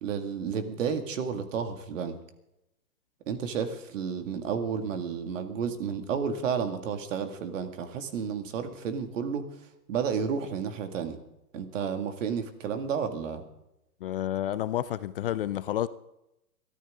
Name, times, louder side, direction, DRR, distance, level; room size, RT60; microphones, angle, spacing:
voice 1, 0.0-2.2 3.3-9.5 9.9-11.2 11.5-13.4, right 6 dB, 55° right, 7 dB, 2.3 m, -31 dB
voice 2, 14.0-15.9, left 12 dB, 40° left, 16 dB, 0.5 m, -30 dB
23.0 x 14.5 x 3.8 m, 0.87 s
figure-of-eight pair, 115°, 46 cm